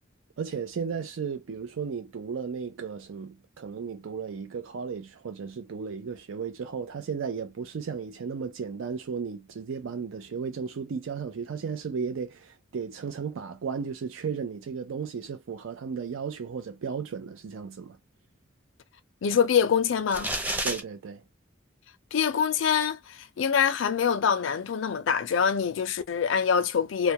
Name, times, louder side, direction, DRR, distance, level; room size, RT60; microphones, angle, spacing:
voice 1, 0.4-18.0 20.6-21.2, right 6 dB, 90° right, 0.4 m, -34 dB
voice 2, 19.2-20.3 22.1-27.1, left 7 dB, 75° left, 0.4 m, -25 dB
sound 1, 20.1-20.8, right 1 dB, 10° right, 0.5 m, -29 dB
2.2 x 2.1 x 2.8 m
head